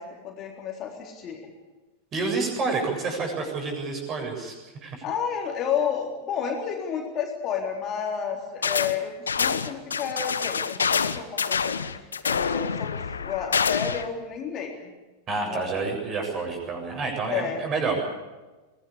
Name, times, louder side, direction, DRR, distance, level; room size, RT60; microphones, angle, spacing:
voice 1, 0.0-1.5 5.0-9.1 9.4-11.7 12.2-14.7 15.4-15.7 17.3-17.6, left 7 dB, 30° left, 1 dB, 3.6 m, -31 dB
voice 2, 2.1-5.0 15.3-18.0, right 4 dB, 30° right, 2 dB, 7.6 m, -29 dB
sound 1, 8.6-9.0 9.3-14.1, left 6 dB, 70° left, 1.0 m, -26 dB
23.5 x 18.0 x 8.5 m, 1.2 s
figure-of-eight pair, 90°, 0 cm